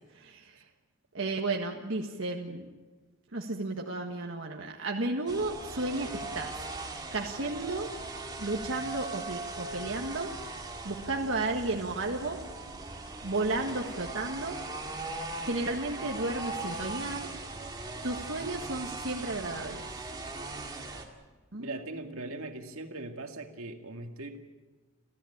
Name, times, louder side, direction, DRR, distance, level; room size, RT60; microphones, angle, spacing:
voice 1, 0.1-0.6 1.1-2.7 3.3-6.5 7.1-7.9 8.4-10.3 10.8-12.4 13.2-14.6 15.4-17.3 18.0-19.8 21.5-22.4, right 2 dB, 60° right, 1 dB, 1.7 m, -33 dB
sound 1, 5.3-21.0, right 2 dB, 20° right, 2.2 m, -39 dB
voice 2, 21.5-24.4, right 2 dB, 75° right, 4 dB, 2.2 m, -40 dB
29.5 x 13.5 x 8.7 m, 1.3 s
head